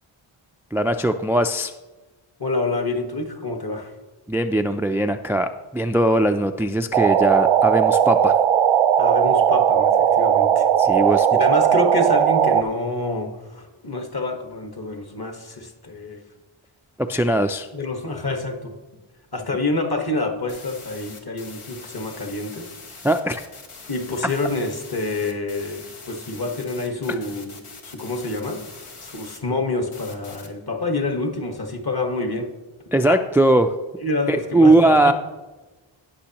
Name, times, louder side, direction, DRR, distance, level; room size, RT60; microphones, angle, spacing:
voice 1, 0.7-1.7 4.3-8.3 10.8-11.4 17.0-17.7 23.0-23.4 32.9-33.7 34.3-35.1, right 1 dB, 5° right, 8 dB, 0.3 m, -20 dB
voice 2, 2.4-3.9 9.0-10.7 11.3-16.2 17.7-18.7 19.3-22.7 23.9-27.6 27.8-32.5 33.1-33.2 34.0-35.1, left 2 dB, 50° left, 3 dB, 1.5 m, -27 dB
sound 1, 6.9-12.6, right 9 dB, 75° right, 0.6 m, -17 dB
sound 2, 20.5-29.4 29.9-30.5, left 4 dB, 80° left, 1.4 m, -42 dB
18.5 x 6.2 x 2.9 m, 1.2 s
wide cardioid pair, 70°, 50 cm